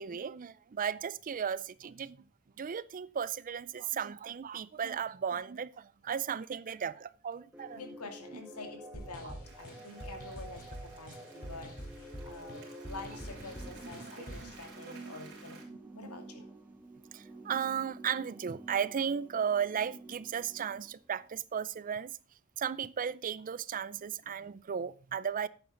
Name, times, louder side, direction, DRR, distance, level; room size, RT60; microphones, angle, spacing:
voice 1, 0.0-2.2 2.6-7.8 8.3-8.4 9.2-9.3 9.9-10.2 13.9-14.5 14.9-15.2 15.7-16.2 17.1-22.2 22.6-25.5, right 7 dB, 40° right, 0.4 m, -36 dB
sound 1, 7.5-21.3, right 1 dB, 10° right, 1.4 m, -50 dB
voice 2, 7.7-15.6 15.9-16.5, left 3 dB, 85° left, 2.6 m, -47 dB
sound 2, 8.9-14.6, equal, 40° left, 3.8 m, -46 dB
Applause, 9.4-15.6, right 4 dB, 55° right, 3.9 m, -55 dB
11.0 x 8.7 x 3.8 m
head